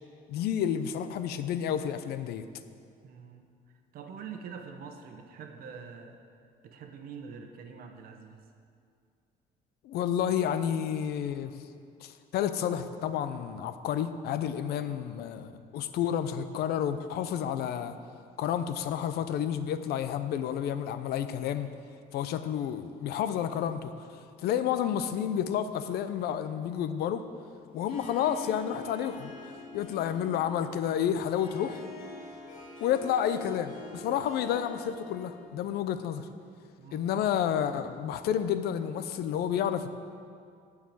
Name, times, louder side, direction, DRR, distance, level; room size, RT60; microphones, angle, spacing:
voice 1, 0.3-2.5 9.8-11.5 12.0-18.0 18.4-21.7 22.1-24.0 24.4-27.2 27.7-29.3 29.7-31.9 32.8-36.3 36.9-39.9, left 9 dB, 70° left, 11 dB, 0.6 m, -30 dB
voice 2, 3.0-3.5 3.9-6.2 6.6-8.4 36.8-37.1, right 6 dB, 60° right, 5 dB, 1.1 m, -45 dB
Harp, 27.7-35.6, left 3 dB, 55° left, 2.8 m, -45 dB
12.0 x 4.8 x 8.6 m, 2.3 s
cardioid pair, 160°, 17 cm